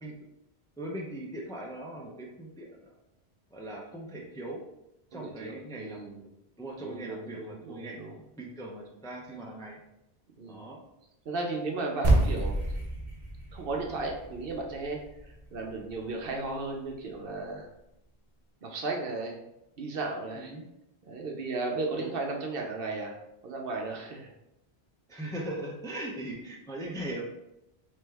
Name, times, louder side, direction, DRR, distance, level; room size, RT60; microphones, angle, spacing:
voice 1, 0.8-2.9 3.5-4.6 5.1-6.0 6.6-8.0 8.4-9.8 10.5-10.8 20.3-20.6 22.0-22.1 25.1-27.2, right 1 dB, 5° left, -1 dB, 0.4 m, -39 dB
voice 2, 5.1-6.2 6.8-8.2 10.4-10.7 11.3-12.6 13.5-15.0 15.5-17.7 18.6-19.4 19.8-20.5 21.0-23.2 23.4-24.3, right 3 dB, 65° right, 1 dB, 0.9 m, -35 dB
sound 1, 12.0-16.6, right 2 dB, 40° right, 0.9 m, -29 dB
3.3 x 3.2 x 3.3 m, 0.88 s
omnidirectional pair, 1.1 m